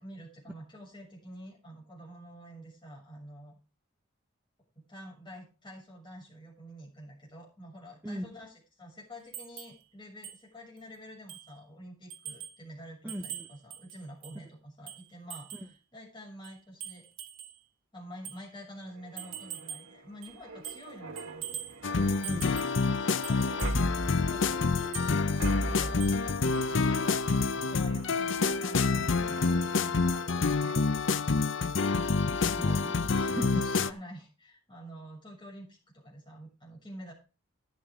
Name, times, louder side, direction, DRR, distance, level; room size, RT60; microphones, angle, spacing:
voice 1, 0.0-3.6 4.9-17.1 17.9-21.6 22.9-24.6 25.0-31.2 33.3-37.1, equal, 20° left, -2 dB, 6.9 m, -48 dB
sound 1, 9.3-9.8 10.2-10.4 10.8-10.9 11.3-11.6 12.1-12.6 13.1-14.4 14.9-15.7 16.4-17.6 18.2-18.4 19.2-19.9 20.2-20.9 21.2-21.8 22.2-22.8 23.2-23.8 24.8-25.1 26.0-26.3 26.5-26.7, right 10 dB, 65° right, 2.4 m, -43 dB
voice 2, 13.0-13.5 15.5-15.6 22.2-22.6 32.5-33.6, equal, 10° right, 3 dB, 1.0 m, -38 dB
sound 2, 18.9-31.2 31.6-31.8, right 1 dB, 80° right, 1.6 m, -41 dB
sound 3, 21.8-33.9, left 4 dB, 60° left, 0.6 m, -28 dB
13.0 x 11.0 x 3.7 m, 0.32 s
head